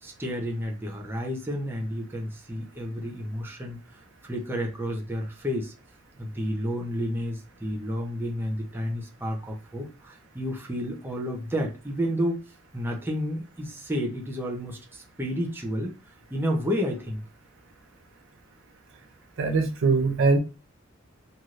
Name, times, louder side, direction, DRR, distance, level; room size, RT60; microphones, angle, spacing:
voice 1, 0.0-3.8 4.2-5.7 6.2-12.4 12.7-15.9 16.3-17.2, equal, 10° right, 0.6 m, -31 dB
voice 2, 19.4-20.4, right 4 dB, 65° right, 0.5 m, -22 dB
3.1 x 2.6 x 2.4 m
head